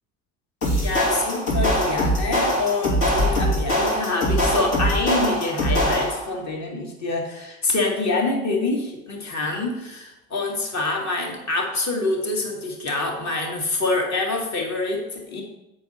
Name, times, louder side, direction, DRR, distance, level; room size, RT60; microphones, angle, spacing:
sound 1, 0.6-6.3, equal, 65° left, 2.5 m, -22 dB
voice 1, 0.8-15.4, left 3 dB, 40° left, 1 dB, 2.1 m, -26 dB
7.5 x 5.5 x 4.3 m, 0.91 s
hypercardioid pair, 65°, 41 cm